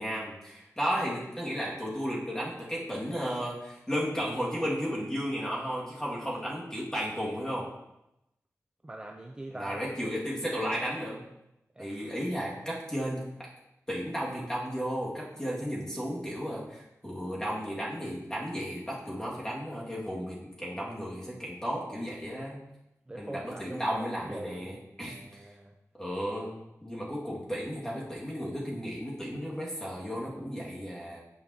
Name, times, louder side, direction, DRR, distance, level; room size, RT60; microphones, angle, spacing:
voice 1, 0.0-7.7 9.5-11.2 11.8-13.2 13.9-22.6 23.1-25.5 26.0-31.2, equal, 10° left, -5 dB, 1.9 m, -34 dB
voice 2, 8.8-9.8 11.8-12.2 16.3-16.5 23.1-24.8 25.0-25.8, right 1 dB, 15° right, 2 dB, 0.4 m, -43 dB
8.6 x 5.2 x 2.8 m, 0.88 s
wide cardioid pair, 105°, 6 cm